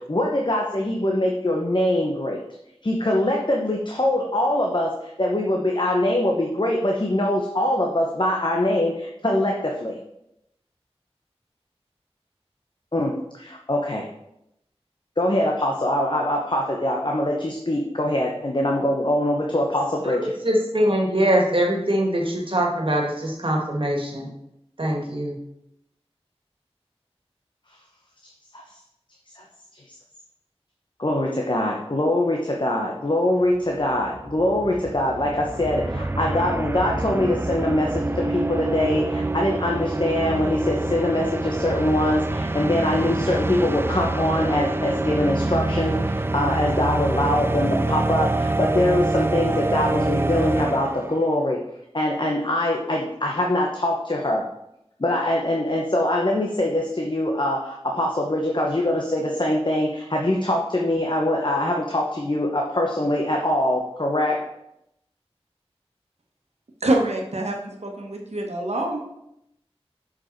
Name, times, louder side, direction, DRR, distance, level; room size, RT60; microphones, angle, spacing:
voice 1, 0.0-2.4 2.8-10.0 12.9-14.1 15.2-20.3 28.5-28.6 29.3-29.4 29.7-30.0 31.0-51.6 51.9-54.4 55.0-64.4, left 1 dB, 45° left, 0 dB, 1.0 m, -23 dB
voice 2, 20.0-24.3 24.8-25.3, right 1 dB, 55° right, 0 dB, 1.9 m, -23 dB
sound 1, 33.5-33.6 33.8-51.3, right 2 dB, 20° right, 0.4 m, -26 dB
voice 3, 66.8-69.0, right 1 dB, 85° right, 1 dB, 1.3 m, -25 dB
7.1 x 5.3 x 4.6 m, 0.82 s
wide cardioid pair, 45°, 11 cm